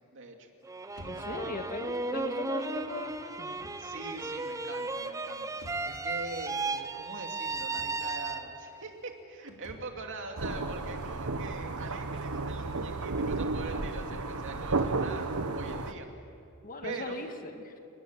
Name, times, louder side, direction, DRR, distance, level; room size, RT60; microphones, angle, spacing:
voice 1, 0.1-0.5 1.1-1.6 3.8-16.1 16.8-17.2, right 3 dB, 60° right, 3 dB, 2.5 m, -43 dB
sound 1, 0.6-8.9, right 3 dB, 15° right, 0.7 m, -35 dB
sound 2, 0.9-15.2, left 1 dB, 85° left, 3.4 m, -54 dB
voice 2, 1.1-3.6 16.6-17.8, left 2 dB, 40° left, 6 dB, 1.7 m, -39 dB
sound 3, 10.4-15.9, right 3 dB, 85° right, 1.2 m, -33 dB
29.5 x 19.5 x 7.5 m, 2.5 s
head